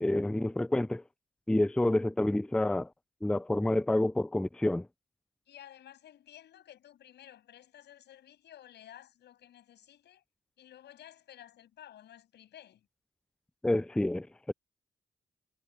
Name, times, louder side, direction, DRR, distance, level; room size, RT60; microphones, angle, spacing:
voice 1, 0.0-1.0 1.5-2.9 3.2-4.9 13.6-14.5, left 1 dB, 5° left, 0.4 m, -28 dB
voice 2, 5.5-10.2 10.6-12.9, left 11 dB, 90° left, 8.0 m, -54 dB
cardioid pair, 65°, 17 cm